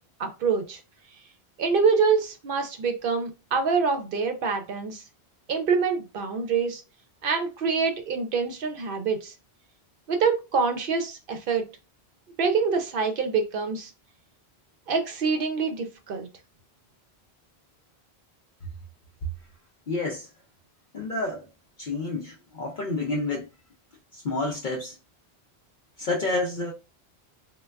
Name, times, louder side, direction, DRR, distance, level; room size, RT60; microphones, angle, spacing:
voice 1, 0.2-0.8 1.6-5.0 5.5-6.8 7.2-9.3 10.1-11.6 12.4-13.9 14.9-16.3, right 5 dB, 65° right, 0.7 m, -25 dB
voice 2, 19.9-20.3 20.9-21.5 21.8-23.5 24.1-24.9 26.0-26.7, left 2 dB, 55° left, 0.7 m, -29 dB
3.2 x 2.2 x 2.2 m
omnidirectional pair, 1.1 m